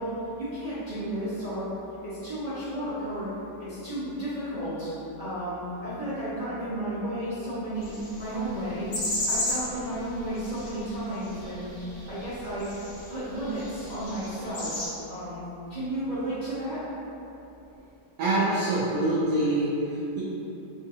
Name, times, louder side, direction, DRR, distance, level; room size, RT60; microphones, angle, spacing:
voice 1, 0.0-1.7 2.0-3.3 3.6-4.9 5.2-11.7 12.1-12.7 13.1-15.4 15.7-16.8, right 1 dB, 40° right, -16 dB, 0.6 m, -33 dB
sound 1, 7.8-14.9, left 1 dB, 70° left, 1.6 m, -35 dB
voice 2, 18.2-20.2, right 1 dB, 70° right, -8 dB, 0.9 m, -25 dB
3.5 x 2.5 x 2.7 m, 2.9 s
omnidirectional pair, 1.9 m